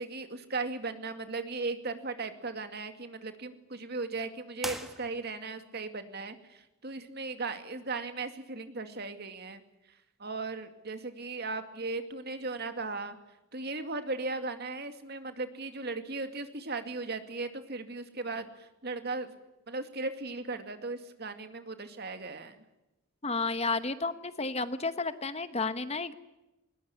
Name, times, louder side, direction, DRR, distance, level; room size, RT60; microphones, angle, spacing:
voice 1, 0.0-9.6 10.2-13.2 13.5-19.3 19.7-22.6, right 3 dB, 50° right, 8 dB, 2.4 m, -37 dB
sound 1, 4.6-5.6, equal, ahead, 1.8 m, -41 dB
voice 2, 23.2-26.1, left 3 dB, 30° left, 12 dB, 1.1 m, -32 dB
20.5 x 20.0 x 10.0 m, 0.97 s
head